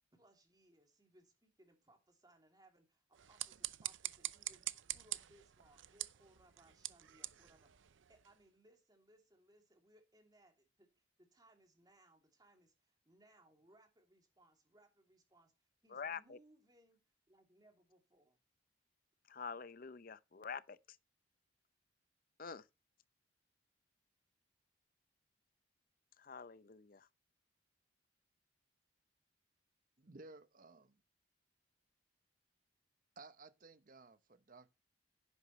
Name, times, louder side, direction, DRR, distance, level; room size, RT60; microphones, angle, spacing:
voice 1, 0.0-7.7 8.1-17.0 17.3-18.4, right 1 dB, 20° right, 2.8 m, -68 dB
sound 1, 3.1-8.4, right 15 dB, 75° right, 0.6 m, -46 dB
voice 2, 15.9-16.4 19.3-20.8 22.4-22.6 26.2-27.1, left 6 dB, 45° left, 0.6 m, -46 dB
voice 3, 30.0-31.0 33.2-34.7, right 3 dB, 45° right, 0.9 m, -57 dB
11.0 x 9.7 x 3.1 m
head